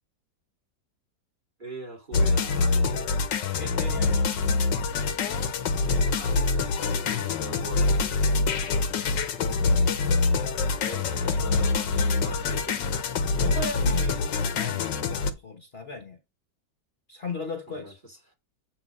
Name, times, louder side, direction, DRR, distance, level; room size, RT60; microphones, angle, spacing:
voice 1, 1.6-3.1 6.0-7.9 10.8-12.8 17.8-18.2, right 2 dB, 25° right, 2.7 m, -41 dB
sound 1, 2.1-15.3, left 3 dB, 90° left, 1.6 m, -25 dB
voice 2, 3.5-4.4 8.3-9.0 13.4-16.2 17.1-18.0, left 3 dB, 40° left, 1.1 m, -37 dB
8.7 x 3.2 x 5.3 m
omnidirectional pair, 1.9 m